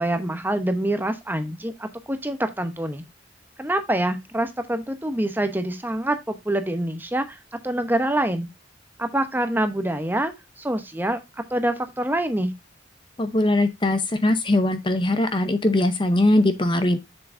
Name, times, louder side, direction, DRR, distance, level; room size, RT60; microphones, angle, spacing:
voice 1, 0.0-3.0 3.6-8.5 9.0-11.2 11.5-12.5, right 1 dB, 10° right, 0.8 m, -26 dB
voice 2, 13.2-17.0, left 1 dB, 25° left, 0.6 m, -21 dB
7.1 x 7.0 x 2.5 m
head